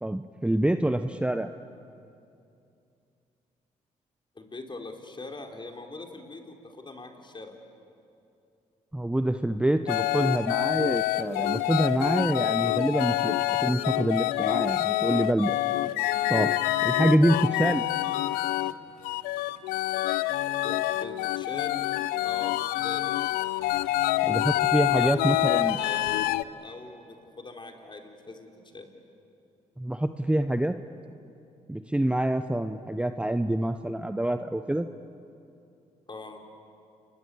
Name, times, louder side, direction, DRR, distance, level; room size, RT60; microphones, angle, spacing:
voice 1, 0.0-1.5 8.9-15.5 16.3-16.5 16.8-17.8 24.2-25.8 29.8-30.8 31.7-34.9, right 1 dB, 5° right, 9 dB, 0.9 m, -26 dB
voice 2, 4.4-7.6 20.6-21.9 22.2-22.5 22.8-23.1 25.0-26.3 26.6-28.9 36.1-36.4, left 3 dB, 30° left, 3 dB, 4.1 m, -41 dB
sound 1, 9.9-18.7 19.0-26.4, left 16 dB, 90° left, 0.6 m, -27 dB
28.5 x 21.5 x 8.6 m, 2.6 s
supercardioid pair, 60°, 15 cm